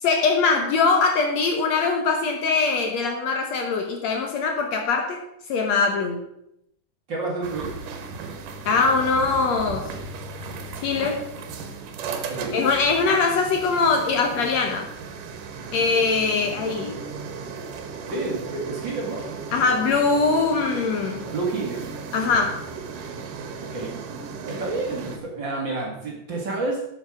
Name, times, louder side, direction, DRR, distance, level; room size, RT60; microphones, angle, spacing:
voice 1, 0.0-5.2 5.5-6.2 8.7-9.9 10.8-11.2 12.5-14.9 15.7-17.0 19.5-21.3 22.1-22.6, left 4 dB, 65° left, 3 dB, 2.0 m, -22 dB
voice 2, 7.1-7.7 12.3-12.7 18.1-19.3 21.3-21.9 23.7-24.0 24.4-26.8, right 3 dB, 40° right, -2 dB, 2.6 m, -29 dB
sound 1, 7.4-25.2, right 5 dB, 80° right, 2.8 m, -36 dB
12.0 x 7.5 x 4.9 m, 0.80 s
omnidirectional pair, 3.7 m